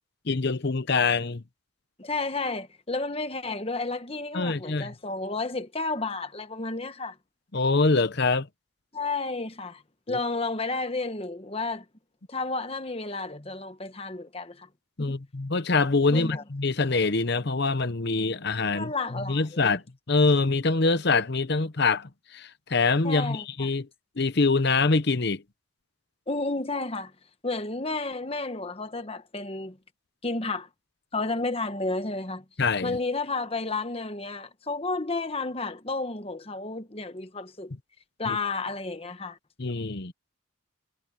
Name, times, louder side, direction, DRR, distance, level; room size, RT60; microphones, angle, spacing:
voice 1, 0.3-1.4 4.3-4.9 7.5-8.5 10.1-10.2 15.0-23.9 24.2-25.4 32.6-33.0 38.3-38.4 39.6-40.1, left 3 dB, 50° left, 0.9 m, -25 dB
voice 2, 2.0-7.2 8.9-9.8 10.1-11.8 12.3-14.7 15.0-15.1 16.1-16.4 18.7-19.7 23.0-23.7 26.3-27.1 27.4-29.8 30.2-30.7 31.1-32.4 32.8-37.7 38.2-39.4, left 3 dB, 25° left, 1.3 m, -31 dB
head